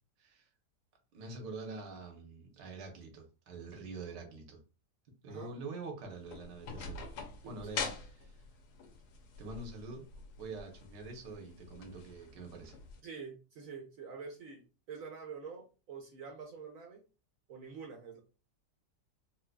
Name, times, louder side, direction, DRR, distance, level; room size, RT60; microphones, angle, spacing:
voice 1, 0.2-0.5 1.1-4.6 5.2-7.0 7.4-8.4 9.4-10.1 10.4-12.8, right 3 dB, 85° right, 1.5 m, -45 dB
sound 1, 6.1-13.0, left 5 dB, 75° left, 1.1 m, -45 dB
voice 2, 13.0-14.6 14.9-17.0 17.5-18.2, right 5 dB, 65° right, 0.9 m, -46 dB
3.8 x 2.8 x 2.2 m
omnidirectional pair, 1.8 m